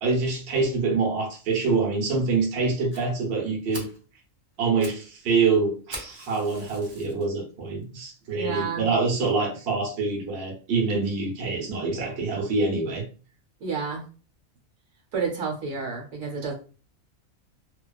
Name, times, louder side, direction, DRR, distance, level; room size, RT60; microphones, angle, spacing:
voice 1, 0.0-3.9 4.6-13.0, right 4 dB, 55° right, -1 dB, 0.9 m, -25 dB
Fire, 2.9-3.0 3.4-3.5 3.7-4.0 4.5-5.0 5.3-5.4 5.9-7.2 7.8-7.9 8.5-8.6 8.8-8.9 9.3-9.4, right 1 dB, 35° right, 0.5 m, -41 dB
voice 2, 8.3-8.9 13.6-14.0 15.1-16.5, right 5 dB, 75° right, -1 dB, 1.1 m, -30 dB
2.4 x 2.2 x 2.3 m, 0.37 s
omnidirectional pair, 1.4 m